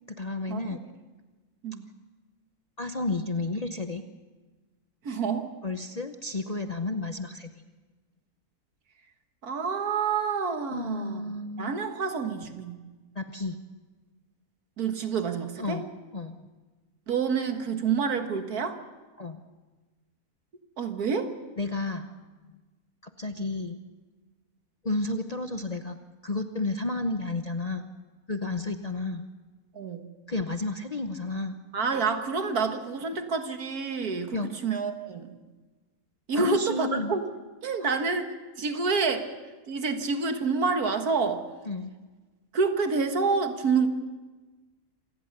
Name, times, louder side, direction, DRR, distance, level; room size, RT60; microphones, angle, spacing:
voice 1, 0.2-0.8 2.8-4.0 5.6-7.5 10.7-11.8 13.2-13.6 15.6-15.8 16.1-16.5 19.2-19.4 21.6-22.1 23.2-23.8 24.8-27.9 28.3-29.2 30.3-31.6 34.3-34.5 36.3-37.2 37.8-37.9 41.7-41.9, left 2 dB, 35° left, 6 dB, 0.7 m, -32 dB
voice 2, 5.0-5.5 9.4-12.8 14.8-15.8 17.1-18.8 20.8-21.3 29.7-30.0 31.7-35.3 36.3-37.2 37.6-39.3 39.7-41.4 42.5-43.9, right 5 dB, 75° right, 7 dB, 2.0 m, -28 dB
26.5 x 17.5 x 6.7 m, 1.3 s
omnidirectional pair, 1.6 m